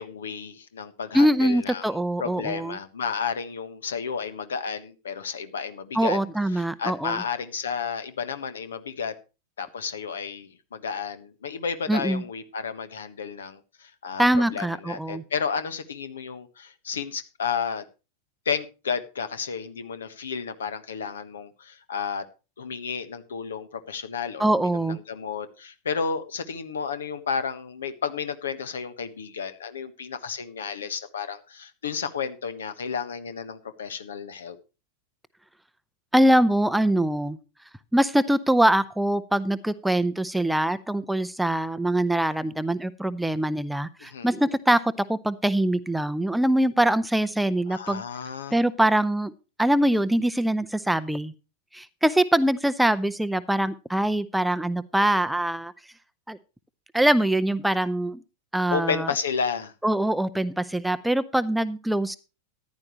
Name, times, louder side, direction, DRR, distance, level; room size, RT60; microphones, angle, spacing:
voice 1, 0.0-1.9 2.2-6.2 6.8-9.1 9.6-17.8 18.4-22.2 22.6-34.6 44.0-44.3 47.7-48.6 58.7-59.7, left 6 dB, 65° left, 1.4 m, -32 dB
voice 2, 1.1-2.8 5.9-7.2 11.9-12.2 14.2-15.2 24.4-25.0 36.1-37.4 37.9-48.0 48.5-49.3 49.6-51.3 51.7-55.7 56.3-56.4 56.9-58.2 58.5-59.1 59.8-62.2, right 1 dB, 5° right, 0.7 m, -23 dB
14.5 x 10.5 x 3.1 m
figure-of-eight pair, 90°, 0 cm